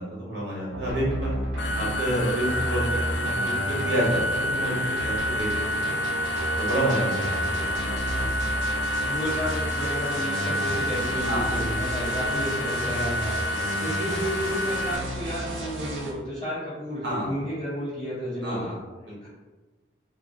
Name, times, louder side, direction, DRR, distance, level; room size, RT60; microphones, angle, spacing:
voice 1, 0.0-1.4 1.8-2.8 3.2-4.8 5.0-6.2 6.6-7.9 8.2-8.3 11.2-11.6 17.0-17.3 18.4-19.3, right 1 dB, 65° right, -5 dB, 1.1 m, -29 dB
sound 1, 0.7-16.1, right 1 dB, 85° right, 0.7 m, -32 dB
sound 2, 1.6-15.0, left 1 dB, 80° left, 0.3 m, -29 dB
voice 2, 9.0-18.7 19.2-19.3, equal, 25° left, -11 dB, 0.7 m, -32 dB
2.5 x 2.0 x 3.7 m, 1.2 s
head